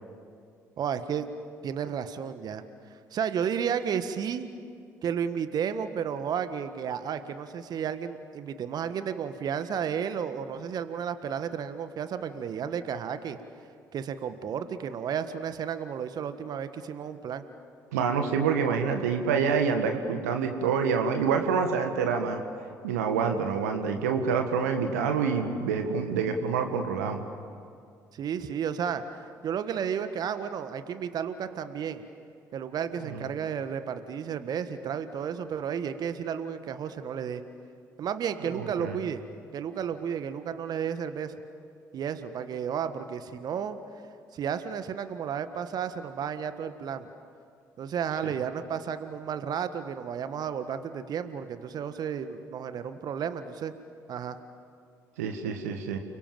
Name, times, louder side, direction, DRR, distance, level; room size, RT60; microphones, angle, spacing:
voice 1, 0.8-1.3 1.6-2.6 2.9-4.5 5.0-13.4 13.9-17.4 28.1-32.1 32.5-37.4 38.0-39.2 39.5-41.3 41.9-43.8 44.3-47.1 47.8-53.7 54.1-54.4, right 7 dB, 50° right, 10 dB, 1.5 m, -32 dB
voice 2, 17.9-22.4 22.8-27.2 33.1-33.2 38.6-39.0 48.2-48.3 55.2-56.0, right 6 dB, 75° right, 5 dB, 1.7 m, -27 dB
30.0 x 23.0 x 7.6 m, 2.3 s
figure-of-eight pair, 50°, 9 cm